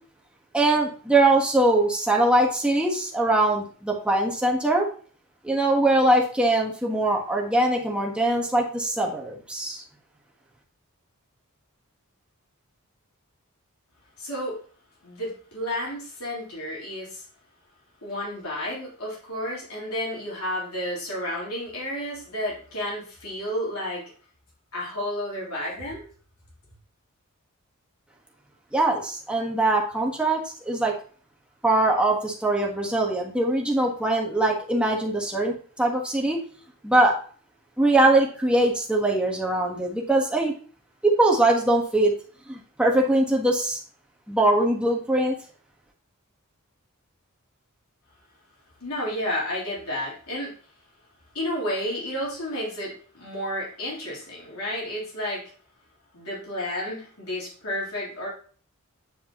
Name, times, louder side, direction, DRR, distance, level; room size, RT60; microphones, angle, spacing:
voice 1, 0.5-4.9 5.4-9.8 28.7-30.9 31.6-36.4 36.8-37.2 37.8-40.5 41.0-42.1 42.5-43.8 44.3-45.4, right 2 dB, 5° right, -1 dB, 1.4 m, -22 dB
voice 2, 14.2-14.6 15.0-17.2 18.0-24.1 24.7-26.0 48.8-50.5 51.3-55.4 56.1-58.3, left 1 dB, 75° left, -5 dB, 3.6 m, -31 dB
9.4 x 5.2 x 3.0 m, 0.42 s
head